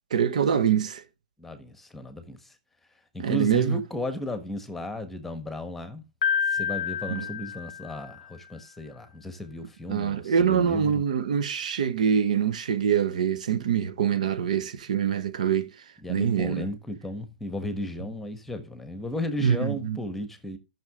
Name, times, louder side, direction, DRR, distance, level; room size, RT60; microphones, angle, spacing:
voice 1, 0.1-1.0 3.2-3.8 7.1-7.3 9.9-15.7 16.1-16.7 19.4-20.0, right 7 dB, 65° right, 1.2 m, -24 dB
voice 2, 1.4-2.4 3.1-6.0 6.5-11.0 16.0-20.6, left 1 dB, 5° left, 1.4 m, -34 dB
Piano, 6.2-8.3, left 9 dB, 65° left, 0.4 m, -29 dB
12.5 x 6.3 x 3.6 m
hypercardioid pair, 130°, 4 cm